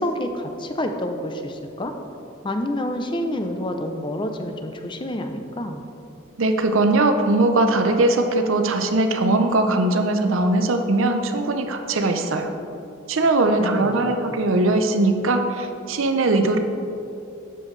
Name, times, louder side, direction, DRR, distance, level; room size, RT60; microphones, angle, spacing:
voice 1, 0.0-1.9 2.4-5.8 13.5-14.2, left 1 dB, 25° left, 6 dB, 0.5 m, -28 dB
voice 2, 6.4-12.5 13.1-16.6, right 2 dB, 70° right, 6 dB, 0.6 m, -20 dB
10.5 x 6.8 x 3.2 m, 2.8 s
head